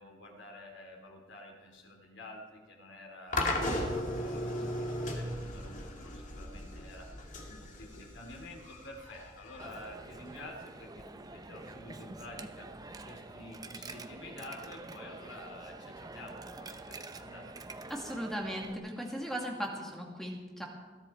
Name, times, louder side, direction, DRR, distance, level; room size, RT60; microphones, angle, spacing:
voice 1, 0.0-17.5, left 1 dB, 80° left, 1 dB, 3.5 m, -49 dB
sound 1, 3.3-10.4, left 1 dB, 45° left, 2.2 m, -36 dB
Coin (dropping), 9.6-18.8, right 2 dB, 20° right, 0.8 m, -47 dB
voice 2, 17.9-20.7, equal, ahead, 0 dB, 2.1 m, -37 dB
20.5 x 13.0 x 4.5 m, 1.4 s
head